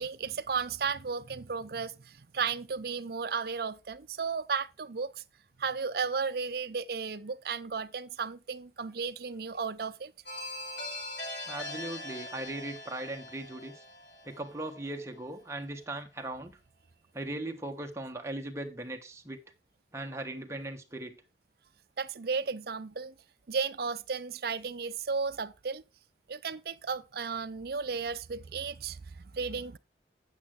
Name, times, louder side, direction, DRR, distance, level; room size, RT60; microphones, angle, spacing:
voice 1, 0.0-5.2 5.6-10.1 22.0-23.1 23.5-25.8 26.3-29.8, right 5 dB, 60° right, 0.6 m, -34 dB
sound 1, 10.3-15.0, left 1 dB, 75° left, 6.9 m, -42 dB
voice 2, 11.5-13.8 14.2-16.6 17.1-19.4 19.9-21.2, right 1 dB, 15° right, 1.3 m, -38 dB
8.9 x 8.5 x 3.6 m
head